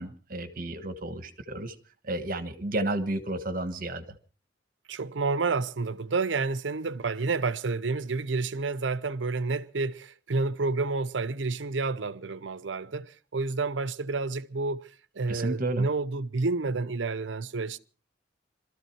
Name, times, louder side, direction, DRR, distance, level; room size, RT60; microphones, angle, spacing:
voice 1, 0.0-1.7 2.0-4.2 15.3-15.9, right 2 dB, 50° right, 1.4 m, -32 dB
voice 2, 4.9-17.8, right 3 dB, 85° right, 0.7 m, -30 dB
22.0 x 13.5 x 4.5 m
head